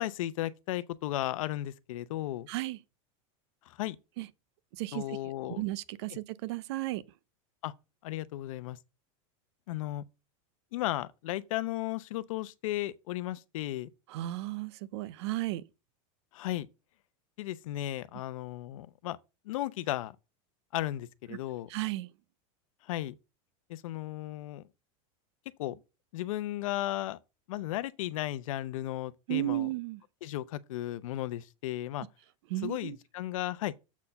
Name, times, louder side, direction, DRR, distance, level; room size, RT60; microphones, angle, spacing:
voice 1, 0.0-2.5 3.7-4.0 4.9-5.6 7.6-7.7 8.0-8.8 9.7-10.0 10.7-13.9 16.3-16.7 17.4-19.2 19.5-20.2 20.7-21.7 22.8-23.1 23.7-24.6 25.6-25.8 26.1-27.2 27.5-29.7 30.2-32.1 32.6-33.7, left 15 dB, 75° left, 0.7 m, -35 dB
voice 2, 2.5-2.8 4.2-4.3 4.7-5.2 5.5-7.0 14.1-15.6 21.3-21.4 21.7-22.1 29.3-30.0 32.5-33.0, right 17 dB, 55° right, 0.5 m, -34 dB
7.2 x 4.3 x 6.6 m
supercardioid pair, 175°, 17 cm